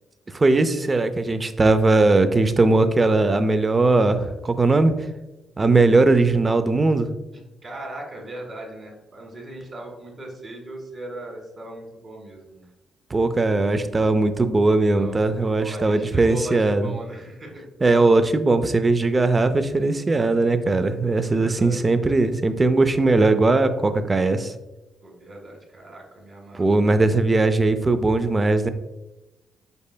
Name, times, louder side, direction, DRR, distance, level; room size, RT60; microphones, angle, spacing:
voice 1, 0.3-4.9 5.6-7.1 13.1-16.9 17.8-24.5 26.6-28.7, right 2 dB, 25° right, 10 dB, 0.4 m, -19 dB
voice 2, 7.6-12.6 15.0-17.6 21.0-21.8 25.0-26.9, right 1 dB, 45° right, 0 dB, 1.5 m, -38 dB
5.3 x 4.1 x 2.2 m, 1.0 s
cardioid pair, 90°, 0 cm